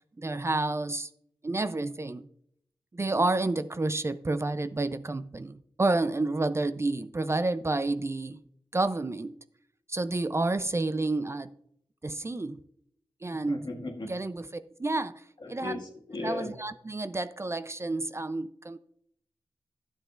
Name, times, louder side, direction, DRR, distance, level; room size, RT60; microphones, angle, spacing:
voice 1, 0.2-1.1 1.4-2.3 2.9-8.4 8.7-9.4 9.9-11.5 12.0-12.6 13.2-13.6 14.1-14.4 14.8-15.2 15.5-15.8 16.2-18.8, right 2 dB, 30° right, 0.5 m, -29 dB
voice 2, 13.3-14.1 15.4-16.5, left 2 dB, 55° left, 1.7 m, -37 dB
12.0 x 7.9 x 2.4 m
cardioid pair, 50°, 9 cm